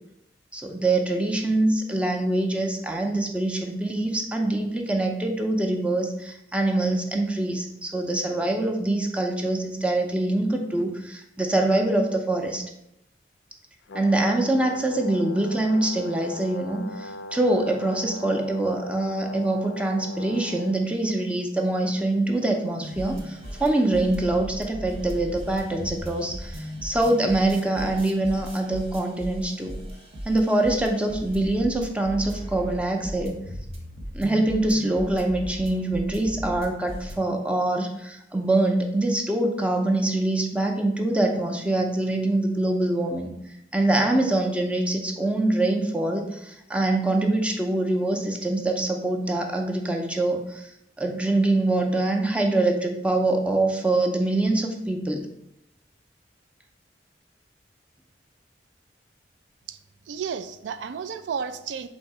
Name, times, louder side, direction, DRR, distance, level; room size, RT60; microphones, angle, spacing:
voice 1, 0.5-12.6 13.9-29.8 30.2-33.4 34.1-43.3 43.7-50.7 51.0-55.3, right 2 dB, 5° right, 2 dB, 0.5 m, -24 dB
Brass instrument, 13.9-20.9, equal, 90° left, 0.4 m, -40 dB
sound 1, 22.8-37.2, equal, 35° right, 0.8 m, -37 dB
voice 2, 60.1-61.9, right 6 dB, 80° right, 11 dB, 0.3 m, -32 dB
4.0 x 2.7 x 4.7 m, 0.82 s
head